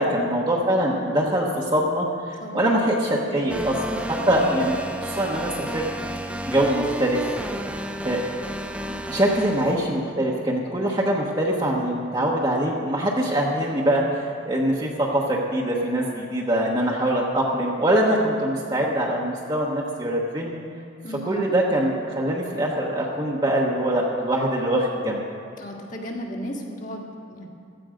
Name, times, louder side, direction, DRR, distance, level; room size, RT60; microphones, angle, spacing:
voice 1, 0.0-5.9 6.5-7.2 8.0-8.2 9.1-20.6 21.2-25.2, right 1 dB, 25° right, -3 dB, 1.1 m, -23 dB
voice 2, 2.4-2.7 3.2-3.7 4.2-4.5 21.0-21.5 25.6-27.5, equal, 40° left, -1 dB, 1.9 m, -36 dB
sound 1, 3.5-9.8, right 1 dB, 5° right, 0.6 m, -32 dB
15.5 x 12.5 x 5.1 m, 2.5 s
head